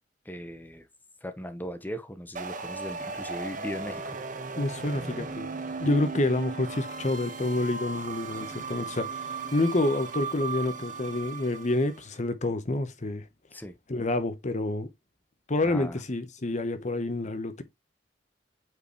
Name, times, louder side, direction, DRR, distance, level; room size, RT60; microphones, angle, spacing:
voice 1, 0.3-0.8 1.2-4.2 13.5-13.7 15.6-16.0, equal, 10° left, 0.9 m, -38 dB
sound 1, 2.4-12.0, right 4 dB, 45° right, 1.3 m, -36 dB
voice 2, 4.6-5.5 5.8-13.2 13.9-14.9 15.5-17.6, left 2 dB, 40° left, 0.9 m, -28 dB
8.4 x 4.8 x 3.1 m
head